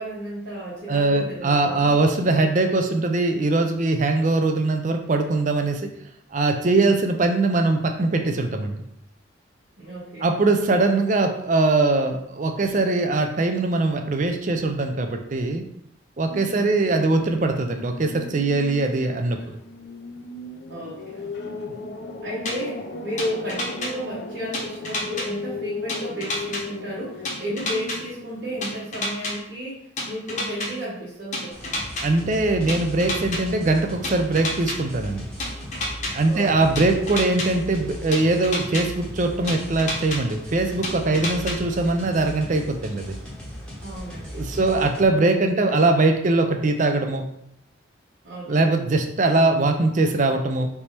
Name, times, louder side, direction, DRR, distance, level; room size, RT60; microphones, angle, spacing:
voice 1, 0.0-2.0 9.8-10.3 16.5-16.9 20.7-21.6 22.2-31.8 36.3-36.5 43.8-44.6 48.2-48.7, equal, 70° right, -8 dB, 1.2 m, -33 dB
voice 2, 0.9-5.8 6.3-8.7 10.2-15.6 16.2-19.6 32.0-35.3 36.1-43.2 44.3-47.2 48.5-50.7, right 2 dB, 40° right, 5 dB, 0.5 m, -21 dB
sound 1, 16.3-28.9, left 3 dB, 60° left, 0.5 m, -37 dB
sound 2, 22.5-22.6 23.2-23.9 24.5-25.3 25.9-26.6 27.3-28.0 28.6-29.3 30.0-30.7 31.3-32.0 32.7-33.4 34.0-34.8 35.4-36.1 36.8-37.5 38.1-38.8 39.5-40.2 40.8-41.6, left 2 dB, 40° left, 0.9 m, -28 dB
sound 3, 31.5-45.0, equal, 5° left, 0.9 m, -37 dB
3.4 x 3.0 x 4.3 m, 0.79 s
head